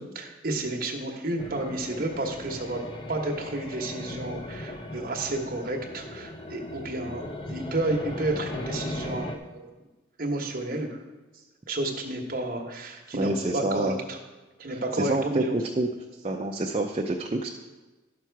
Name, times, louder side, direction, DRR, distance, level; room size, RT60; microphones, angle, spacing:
voice 1, 0.0-2.8 3.1-9.7 10.2-11.0 11.7-14.2 14.6-15.5, right 2 dB, 45° right, 1 dB, 1.2 m, -31 dB
sound 1, 1.4-9.4, left 1 dB, 25° left, 0.6 m, -37 dB
voice 2, 13.2-14.0 14.9-15.9 16.2-17.5, right 2 dB, 30° right, 0 dB, 0.5 m, -27 dB
11.0 x 6.0 x 4.6 m, 1.2 s
head